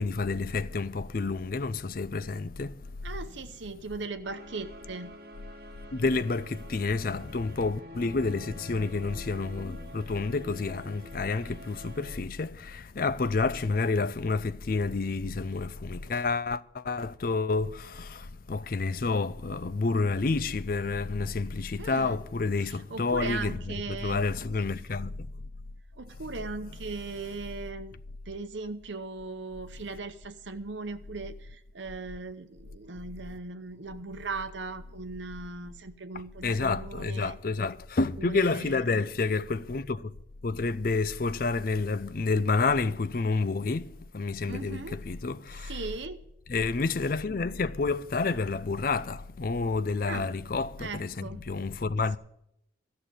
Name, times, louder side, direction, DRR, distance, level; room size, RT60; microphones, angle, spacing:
voice 1, 0.0-2.8 5.9-23.6 23.9-25.1 36.4-40.1 40.4-45.8 46.5-52.2, left 3 dB, 50° left, 0.5 m, -29 dB
voice 2, 3.0-5.1 21.8-22.2 22.6-24.2 25.9-28.0 28.3-37.4 38.2-39.0 44.5-45.0 45.6-46.2 50.1-50.3 50.8-51.4, right 3 dB, 80° right, 0.8 m, -38 dB
sound 1, 4.2-12.2, left 1 dB, 55° right, 1.1 m, -47 dB
13.5 x 6.6 x 8.9 m
head